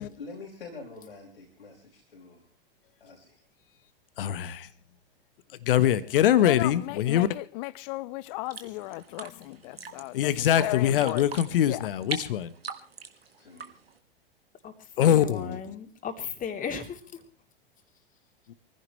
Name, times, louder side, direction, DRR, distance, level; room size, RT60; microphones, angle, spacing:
voice 1, 0.0-2.5 3.0-3.4 13.2-13.7, left 3 dB, 85° left, 5.0 m, -46 dB
voice 2, 4.2-4.7 5.6-7.3 10.1-12.5 15.0-15.6 18.5-18.6, left 11 dB, 65° left, 1.3 m, -23 dB
voice 3, 6.4-11.4 11.7-11.8, left 20 dB, 50° left, 0.8 m, -36 dB
sound 1, 8.4-14.0, right 6 dB, 85° right, 1.8 m, -41 dB
voice 4, 14.6-17.3, left 7 dB, 25° left, 3.1 m, -36 dB
24.0 x 15.5 x 3.2 m
hypercardioid pair, 95°, 29 cm